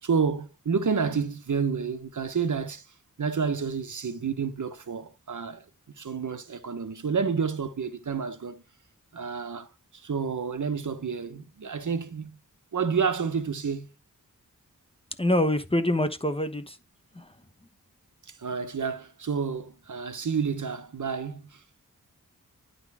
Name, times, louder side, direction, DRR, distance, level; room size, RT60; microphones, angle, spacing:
voice 1, 0.0-2.9 3.2-5.7 6.0-8.6 9.1-12.4 12.7-13.9 18.3-21.6, right 5 dB, 65° right, 1.1 m, -29 dB
voice 2, 15.2-16.8 17.1-17.3, left 1 dB, 15° left, 1.0 m, -25 dB
10.5 x 4.0 x 4.8 m
wide cardioid pair, 60°, 33 cm